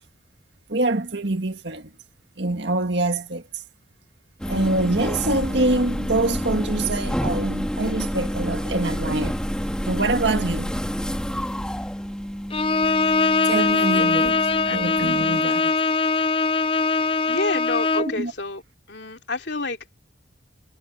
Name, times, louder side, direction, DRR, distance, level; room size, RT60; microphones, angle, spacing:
voice 1, 0.7-1.9 2.4-3.4 4.5-9.4 9.9-10.8 13.5-14.4 14.7-15.7 18.0-18.3, right 2 dB, 60° right, 1.9 m, -25 dB
sound 1, 4.4-15.4, equal, 5° left, 2.2 m, -29 dB
Bowed string instrument, 12.5-18.2, left 4 dB, 25° left, 0.4 m, -21 dB
voice 2, 17.0-18.6 18.9-20.0, left 3 dB, 60° left, 2.9 m, -29 dB
head